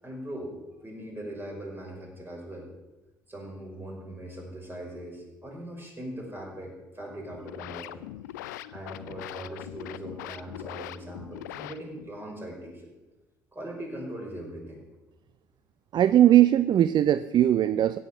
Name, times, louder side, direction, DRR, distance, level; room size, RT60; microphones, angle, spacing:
voice 1, 0.0-2.7 3.3-7.9 8.5-12.9 13.5-14.8, right 1 dB, 20° right, -1 dB, 5.8 m, -40 dB
sound 1, 7.2-12.2, left 14 dB, 80° left, 0.4 m, -41 dB
voice 2, 15.9-18.0, right 12 dB, 50° right, 15 dB, 0.5 m, -20 dB
15.5 x 7.8 x 7.3 m, 1.1 s
figure-of-eight pair, 45°, 10 cm